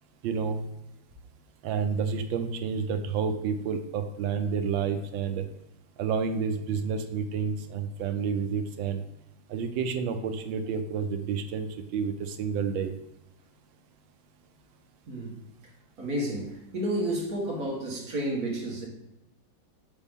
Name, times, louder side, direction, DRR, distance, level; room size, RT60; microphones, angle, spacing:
voice 1, 0.2-0.7 1.6-5.4 6.0-9.0 9.5-11.7 11.9-12.9, right 6 dB, 80° right, 7 dB, 1.4 m, -29 dB
voice 2, 15.1-15.4 16.0-18.9, right 1 dB, 50° right, -3 dB, 1.9 m, -31 dB
7.0 x 4.6 x 3.5 m, 0.91 s
omnidirectional pair, 2.1 m